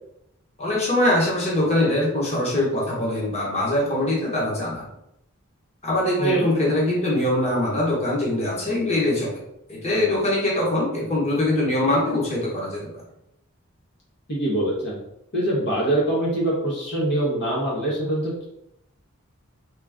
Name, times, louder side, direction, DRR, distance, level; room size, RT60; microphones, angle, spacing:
voice 1, 0.6-4.9 5.8-9.4 9.7-13.0, left 1 dB, 30° left, -5 dB, 1.3 m, -23 dB
voice 2, 14.3-15.0 15.3-18.4, right 1 dB, 55° left, -4 dB, 1.1 m, -24 dB
3.7 x 3.1 x 3.6 m, 0.82 s
head